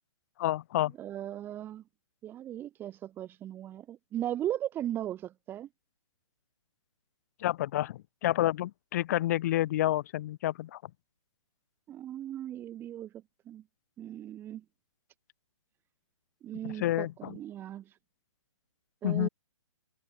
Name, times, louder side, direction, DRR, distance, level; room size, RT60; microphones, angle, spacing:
voice 1, 0.4-0.9 7.4-10.8 16.6-17.4 19.0-19.3, left 14 dB, 30° left, 0.4 m, -29 dB
voice 2, 1.0-1.8 2.2-5.7 11.9-13.1 13.5-13.6 14.0-14.6 16.4-18.0 19.0-19.3, right 12 dB, 15° right, 0.6 m, -37 dB
figure-of-eight pair, 135°, 17 cm